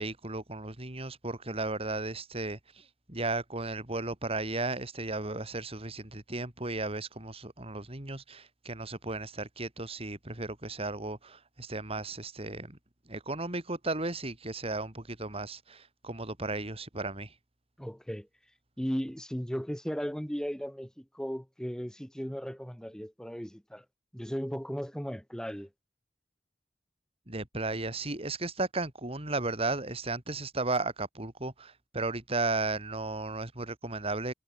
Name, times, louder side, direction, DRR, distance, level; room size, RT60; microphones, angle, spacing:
voice 1, 0.0-12.8 13.1-17.3 27.3-34.3, right 2 dB, 35° right, 3.9 m, -35 dB
voice 2, 17.8-18.3 18.8-23.8 24.1-25.7, equal, 5° left, 1.5 m, -36 dB
head